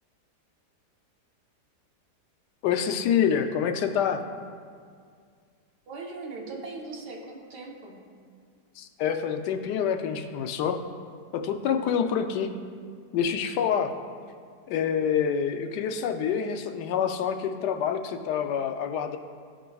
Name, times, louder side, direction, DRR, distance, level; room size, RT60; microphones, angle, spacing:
voice 1, 2.6-4.2 8.8-10.8 11.3-12.5 13.1-13.9 14.7-19.2, left 8 dB, 80° left, 6 dB, 1.2 m, -27 dB
voice 2, 5.9-8.0 12.1-12.2, right 3 dB, 75° right, 0 dB, 1.6 m, -39 dB
13.0 x 5.0 x 2.3 m, 2.1 s
omnidirectional pair, 1.8 m